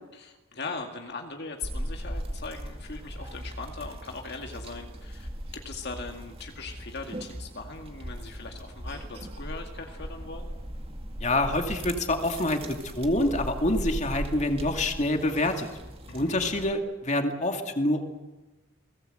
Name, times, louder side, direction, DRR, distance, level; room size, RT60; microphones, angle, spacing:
voice 1, 0.1-10.5 16.1-16.4, left 3 dB, 50° left, 3 dB, 2.1 m, -40 dB
sound 1, 1.6-16.7, equal, 25° right, 2.2 m, -38 dB
voice 2, 11.2-15.7 16.1-18.1, left 1 dB, 30° left, 5 dB, 2.4 m, -26 dB
29.5 x 19.5 x 7.9 m, 1.1 s
head